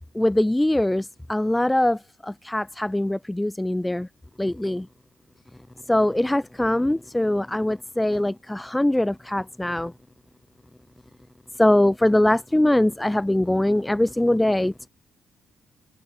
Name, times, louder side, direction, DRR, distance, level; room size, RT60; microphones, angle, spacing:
voice 1, 0.1-4.1 4.4-4.9 5.9-9.9 11.6-14.9, left 1 dB, 10° left, 2.5 m, -22 dB
cardioid pair, 75°, 0 cm